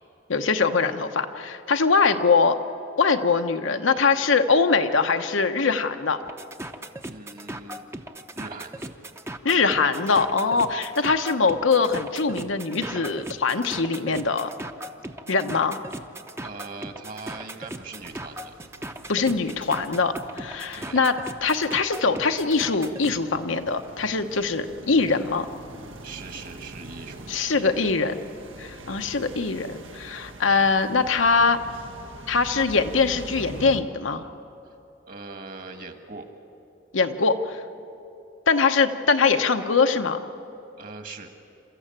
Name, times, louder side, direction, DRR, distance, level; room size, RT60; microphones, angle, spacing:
voice 1, 0.3-2.6 3.0-6.2 9.4-14.5 15.3-15.8 19.1-21.1 21.4-25.5 27.3-28.1 28.6-31.6 32.3-34.2 36.9-37.6 38.5-40.2, left 4 dB, 85° left, 7 dB, 1.0 m, -22 dB
sound 1, 6.2-23.2, right 1 dB, 15° right, 0.7 m, -38 dB
voice 2, 7.0-7.9 8.4-8.9 16.4-18.5 20.7-21.0 26.0-27.3 27.6-27.8 35.0-36.3 40.8-41.3, right 3 dB, 45° right, 6 dB, 1.6 m, -40 dB
sound 2, 18.0-33.8, right 2 dB, 90° right, 1.3 m, -44 dB
27.5 x 14.0 x 8.9 m, 2.8 s
head